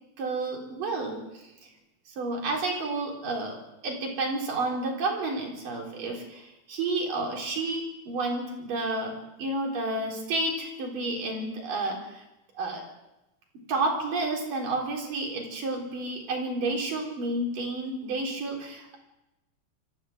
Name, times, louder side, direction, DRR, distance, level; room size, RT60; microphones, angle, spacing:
voice 1, 0.2-1.5 2.2-3.6 3.8-9.1 9.4-12.2 12.6-12.8 13.7-19.0, right 2 dB, 65° right, 0 dB, 5.7 m, -30 dB
24.0 x 14.5 x 8.1 m, 0.97 s
omnidirectional pair, 4.2 m